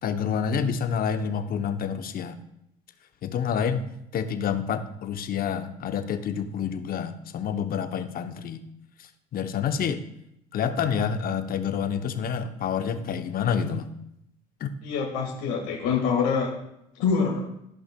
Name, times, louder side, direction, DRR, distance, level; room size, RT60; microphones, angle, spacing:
voice 1, 0.0-2.4 3.2-3.9 4.1-8.6 9.0-10.0 10.5-13.9 14.6-14.7, left 7 dB, 50° left, 8 dB, 0.8 m, -28 dB
voice 2, 14.8-16.5 17.0-17.5, left 5 dB, 75° left, -1 dB, 1.8 m, -25 dB
14.0 x 5.4 x 2.3 m, 0.80 s
hypercardioid pair, 70°, 19 cm